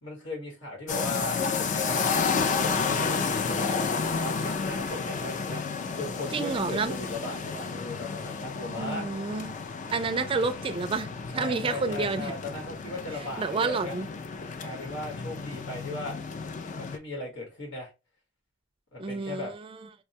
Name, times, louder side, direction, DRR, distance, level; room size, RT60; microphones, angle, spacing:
voice 1, 0.0-9.1 11.3-13.9 14.6-16.2 16.7-17.9 18.9-19.5, left 1 dB, 90° left, 1.4 m, -38 dB
sound 1, 0.9-17.0, left 5 dB, 40° left, 0.4 m, -31 dB
voice 2, 6.3-6.9 8.7-9.5 9.9-12.3 13.4-14.1 19.0-19.6, right 4 dB, 30° right, 0.3 m, -29 dB
4.5 x 2.2 x 2.7 m
head